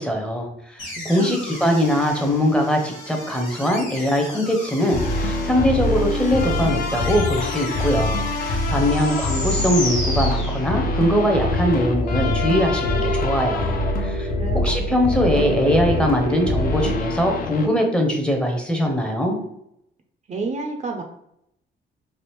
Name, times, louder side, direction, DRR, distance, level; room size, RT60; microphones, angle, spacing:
voice 1, 0.0-14.3 14.5-19.4, equal, 5° left, 2 dB, 0.7 m, -22 dB
sound 1, 0.8-11.1, left 1 dB, 85° left, 1.3 m, -34 dB
voice 2, 0.8-1.4 14.3-14.6 14.9-15.1 20.3-21.0, right 3 dB, 35° right, 3 dB, 0.5 m, -30 dB
sound 2, 4.9-17.7, left 2 dB, 45° left, 0.5 m, -24 dB
sound 3, 11.3-16.9, equal, 85° right, 0.8 m, -29 dB
3.4 x 2.5 x 2.9 m, 0.78 s
cardioid pair, 90°, 20 cm